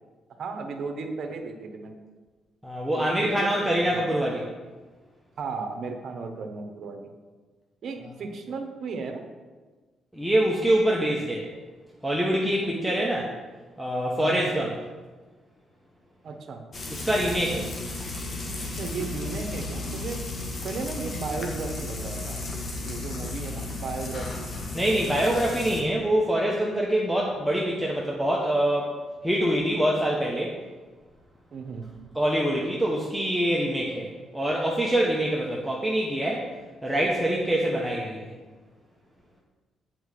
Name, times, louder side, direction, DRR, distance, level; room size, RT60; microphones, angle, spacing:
voice 1, 0.4-2.0 2.9-4.0 5.4-7.1 7.8-9.3 12.6-12.9 14.2-14.4 16.2-16.6 18.7-20.2 20.6-22.4 22.8-24.5 31.5-31.9, right 4 dB, 55° right, 5 dB, 1.2 m, -35 dB
voice 2, 2.6-4.4 10.1-11.5 12.0-13.2 13.8-14.7 16.9-17.7 24.7-28.9 29.2-30.5 32.1-36.5 36.8-38.3, right 1 dB, 5° right, -3 dB, 1.2 m, -25 dB
Frying (food), 16.7-25.8, left 3 dB, 40° left, 1.5 m, -34 dB
7.9 x 4.9 x 6.6 m, 1.3 s
cardioid pair, 90°, 0 cm